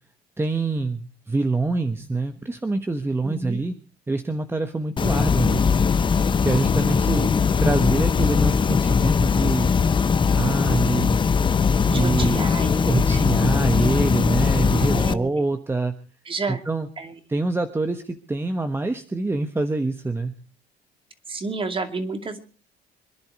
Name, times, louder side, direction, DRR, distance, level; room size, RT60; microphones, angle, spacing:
voice 1, 0.4-3.8 4.1-5.6 6.4-7.2 7.6-9.7 10.3-11.3 11.8-12.4 12.8-15.9 16.5-16.9 17.3-20.3, right 3 dB, 15° right, 8 dB, 1.2 m, -25 dB
voice 2, 3.2-3.6 7.1-7.4 11.8-13.3 14.9-15.3 16.3-16.6 17.0-17.1 21.3-22.4, right 3 dB, 30° right, 8 dB, 2.5 m, -31 dB
sound 1, 5.0-15.1, left 6 dB, 30° left, 0.8 m, -20 dB
25.5 x 10.5 x 4.7 m, 0.37 s
cardioid pair, 110°, 17 cm